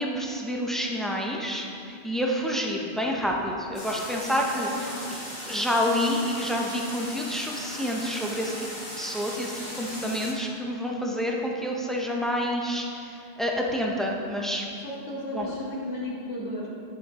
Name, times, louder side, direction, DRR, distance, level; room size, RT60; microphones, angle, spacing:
voice 1, 0.0-5.2 5.5-8.7 9.0-14.7 15.3-15.6, equal, ahead, -1 dB, 0.5 m, -28 dB
sound 1, 3.7-10.3, left 1 dB, 40° left, 1.9 m, -38 dB
voice 2, 4.5-5.1 14.8-16.7, left 1 dB, 75° left, -4 dB, 1.6 m, -34 dB
11.0 x 5.1 x 3.7 m, 2.6 s
omnidirectional pair, 1.1 m